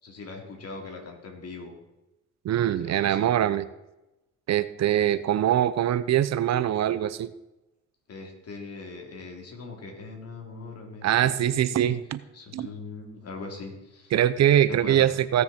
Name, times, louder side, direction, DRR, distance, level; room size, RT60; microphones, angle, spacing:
voice 1, 0.0-1.7 2.8-3.3 8.1-11.9 12.3-14.1 14.7-15.1, left 3 dB, 55° left, 2 dB, 3.1 m, -40 dB
voice 2, 2.4-3.6 4.5-7.3 11.0-12.2 12.5-12.7 14.1-15.4, right 11 dB, 60° right, 14 dB, 0.7 m, -23 dB
17.0 x 6.6 x 4.3 m, 0.98 s
cardioid pair, 90°, 30 cm